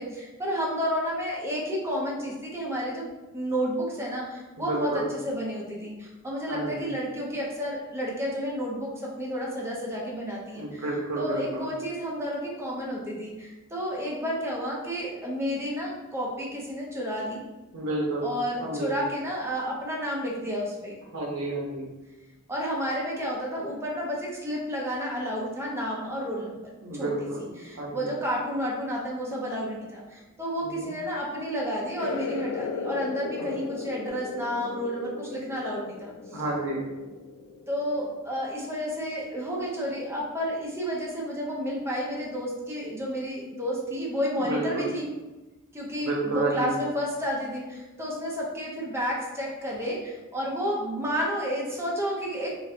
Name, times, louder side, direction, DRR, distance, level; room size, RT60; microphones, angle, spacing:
voice 1, 0.0-3.0 3.3-10.8 11.2-17.4 18.2-21.0 22.5-26.6 27.0-27.1 27.6-36.4 37.7-45.1 45.7-52.5, equal, 10° right, -4 dB, 0.6 m, -31 dB
voice 2, 4.6-5.0 6.5-6.8 10.5-11.7 17.7-18.3 18.6-19.0 21.1-21.9 26.7-27.5 27.8-28.1 30.6-30.9 36.3-36.8 44.4-44.9 46.0-46.7, right 2 dB, 75° right, -2 dB, 0.8 m, -30 dB
sound 1, 32.0-38.1, left 4 dB, 80° left, 0.3 m, -36 dB
4.0 x 2.2 x 2.7 m, 1.1 s
head